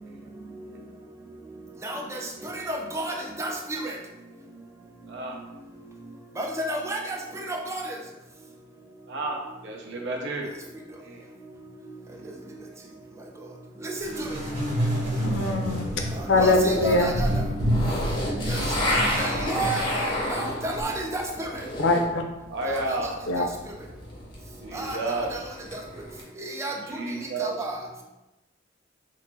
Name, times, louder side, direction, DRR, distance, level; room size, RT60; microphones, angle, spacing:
voice 1, 2.4-3.9 6.4-7.0 7.5-7.8 13.8-14.1 16.4-17.3 19.2-21.5 24.7-25.0 26.6-26.7 27.4-27.7, right 1 dB, 15° right, 1 dB, 0.3 m, -31 dB
voice 2, 5.1-5.4 9.1-10.5 11.0-11.2 12.1-12.2 13.8-14.0 18.6-19.0 22.5-23.2 24.6-25.3 26.9-27.6, right 2 dB, 65° right, 1 dB, 0.5 m, -32 dB
sound 1, 14.0-20.8, equal, 35° right, 0.9 m, -29 dB
voice 3, 15.2-15.9 16.3-17.1 21.8-22.2 23.3-23.4, left 2 dB, 70° left, 3 dB, 0.4 m, -22 dB
Stanley Knife Scraping Macbook, 16.3-22.2 22.4-26.2, left 1 dB, 25° left, 0.6 m, -32 dB
2.9 x 2.0 x 3.3 m, 0.99 s
head